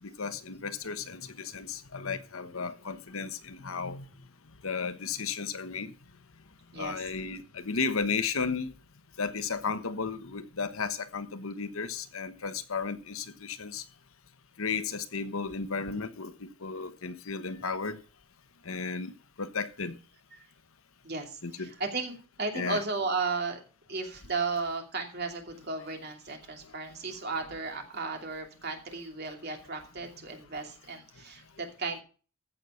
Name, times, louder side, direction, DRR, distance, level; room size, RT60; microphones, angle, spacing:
voice 1, 0.0-4.0 4.6-5.9 6.7-8.7 9.2-13.8 14.6-18.0 18.6-19.1 19.4-20.0 21.4-21.7 22.5-22.8 26.6-26.7, left 5 dB, 75° left, 1.1 m, -34 dB
voice 2, 21.0-23.6 23.9-32.0, right 4 dB, 50° right, 2.6 m, -35 dB
15.0 x 6.5 x 5.6 m
head